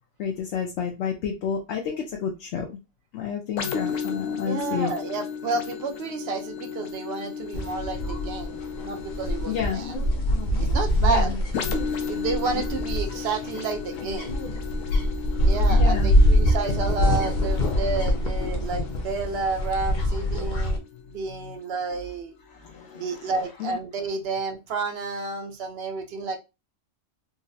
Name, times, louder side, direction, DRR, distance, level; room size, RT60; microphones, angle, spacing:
voice 1, 0.2-2.7 3.1-4.9 9.5-9.8 11.0-11.3 15.7-16.1 22.6-23.1 23.6-23.7, left 7 dB, 70° left, 0.9 m, -30 dB
sound 1, 3.6-21.1 21.6-21.8, left 6 dB, 90° left, 1.0 m, -35 dB
voice 2, 4.4-10.0 10.6-11.3 12.1-14.4 15.4-20.8 21.1-22.3 22.9-26.4, right 4 dB, 60° right, 0.8 m, -30 dB
sound 2, 7.5-20.8, equal, 55° left, 0.6 m, -24 dB
3.8 x 2.0 x 2.6 m
omnidirectional pair, 1.3 m